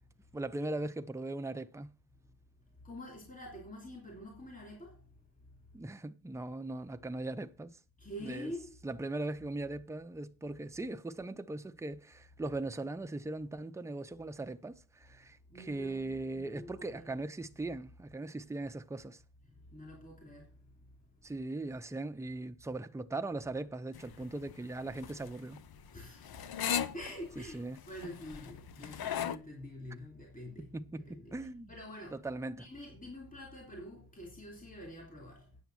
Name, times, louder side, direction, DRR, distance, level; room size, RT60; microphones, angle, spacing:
voice 1, 0.3-1.9 5.7-7.7 8.2-8.5 8.8-19.2 21.2-25.6 27.4-27.8 29.0-29.1 30.6-31.7 32.1-32.7, right 2 dB, 10° right, 0.5 m, -39 dB
voice 2, 2.8-5.1 8.0-8.8 15.5-17.1 19.5-20.8 25.9-26.5 26.9-30.7 31.0-31.4 31.7-32.2 32.5-35.6, left 1 dB, 20° left, 2.9 m, -47 dB
sound 1, 23.9-29.4, left 9 dB, 70° left, 0.8 m, -38 dB
9.5 x 7.1 x 6.0 m
wide cardioid pair, 140°, 38 cm